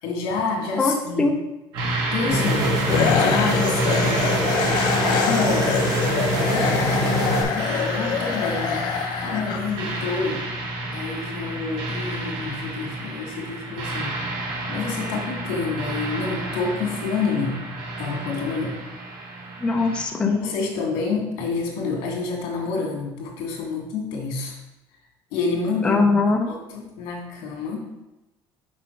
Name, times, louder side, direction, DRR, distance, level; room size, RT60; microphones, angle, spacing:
voice 1, 0.0-1.3 2.1-2.8 3.1-4.2 5.0-6.0 6.5-8.9 9.2-10.4 10.9-14.2 14.7-17.6 18.0-18.8 20.2-24.5 25.3-26.0 26.5-28.1, left 4 dB, 85° left, 0 dB, 2.0 m, -28 dB
voice 2, 0.8-1.3 19.6-20.4 25.8-26.5, left 3 dB, 10° left, 2 dB, 0.5 m, -21 dB
sound 1, 1.7-20.0, right 1 dB, 70° right, 1.4 m, -30 dB
sound 2, 2.3-7.4, right 1 dB, 45° right, 1.3 m, -24 dB
sound 3, 2.9-10.1, left 7 dB, 50° left, 0.7 m, -25 dB
6.2 x 5.6 x 4.4 m, 0.97 s
cardioid pair, 175°, 9 cm